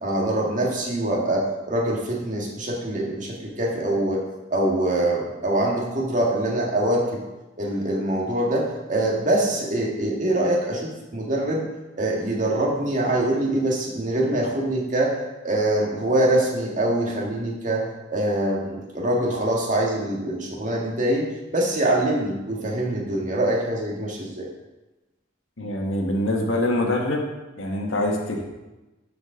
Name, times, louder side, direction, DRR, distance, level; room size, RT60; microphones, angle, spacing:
voice 1, 0.0-4.2 4.5-7.2 7.6-11.7 12.0-15.2 15.4-24.5, right 1 dB, 40° right, -2 dB, 1.7 m, -24 dB
voice 2, 25.6-27.3 27.6-28.4, left 1 dB, 85° left, 0 dB, 1.5 m, -24 dB
12.5 x 5.2 x 3.8 m, 1.1 s
head